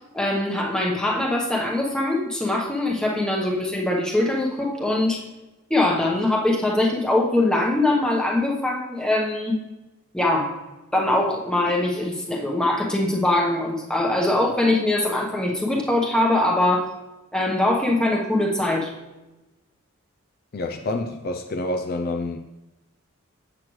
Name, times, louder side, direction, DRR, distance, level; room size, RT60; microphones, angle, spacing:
voice 1, 0.1-5.2 5.7-9.6 10.1-10.6 10.9-16.9 17.3-18.9, left 1 dB, 5° left, -2 dB, 1.0 m, -22 dB
voice 2, 20.5-22.4, left 2 dB, 45° left, 5 dB, 0.4 m, -28 dB
7.6 x 7.5 x 3.2 m, 1.0 s
head